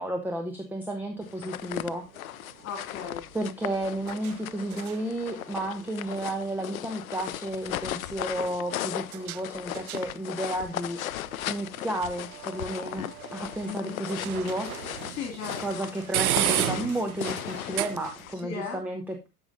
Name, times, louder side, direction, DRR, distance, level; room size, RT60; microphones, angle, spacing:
voice 1, 0.0-2.1 3.3-11.0 11.5-14.8 15.6-19.3, right 1 dB, 5° right, 4 dB, 1.2 m, -32 dB
sound 1, 1.0-18.4, right 12 dB, 75° right, 0.6 m, -37 dB
Steps in the snow, 1.3-18.3, left 13 dB, 70° left, 0.6 m, -37 dB
voice 2, 2.6-3.2 13.6-14.0 15.1-15.9 18.4-18.8, left 6 dB, 35° left, 2 dB, 2.6 m, -37 dB
13.5 x 5.5 x 2.6 m, 0.25 s
figure-of-eight pair, 85°, 44 cm